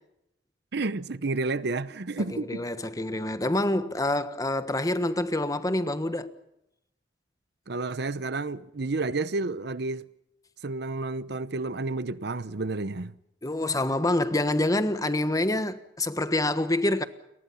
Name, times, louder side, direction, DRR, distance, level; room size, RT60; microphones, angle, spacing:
voice 1, 0.7-2.7 7.7-10.1 10.6-13.1, right 3 dB, 65° right, 0.8 m, -30 dB
voice 2, 2.3-6.3 13.4-17.0, left 1 dB, 20° left, 1.3 m, -26 dB
29.5 x 23.5 x 5.7 m
head